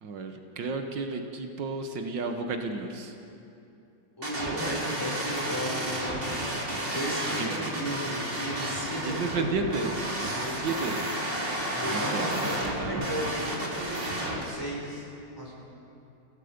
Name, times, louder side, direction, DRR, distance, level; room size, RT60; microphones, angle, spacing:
voice 1, 0.0-3.1 7.4-7.7 9.1-10.0 10.4-11.0 11.9-13.1, right 3 dB, 80° right, 5 dB, 1.8 m, -32 dB
voice 2, 4.2-6.1 6.9-9.6 10.3-10.9 11.7-15.1 15.4-15.6, equal, 10° left, -5 dB, 5.9 m, -35 dB
sound 1, 4.2-14.4, right 1 dB, 30° right, 3.0 m, -32 dB
29.5 x 17.0 x 5.1 m, 2.7 s
omnidirectional pair, 2.0 m